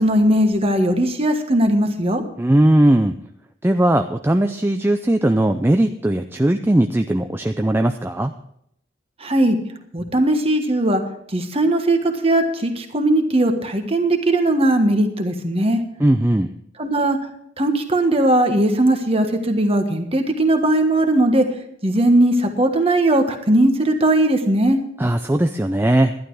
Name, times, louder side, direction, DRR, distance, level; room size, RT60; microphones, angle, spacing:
voice 1, 0.0-2.2 9.2-9.6 9.9-11.0 11.3-15.8 16.8-17.2 17.6-21.5 21.8-24.8, right 1 dB, 30° right, 6 dB, 1.4 m, -18 dB
voice 2, 2.4-3.2 3.6-8.3 16.0-16.5 25.0-26.2, right 1 dB, 10° right, 6 dB, 0.4 m, -18 dB
12.0 x 11.5 x 4.8 m, 0.72 s
head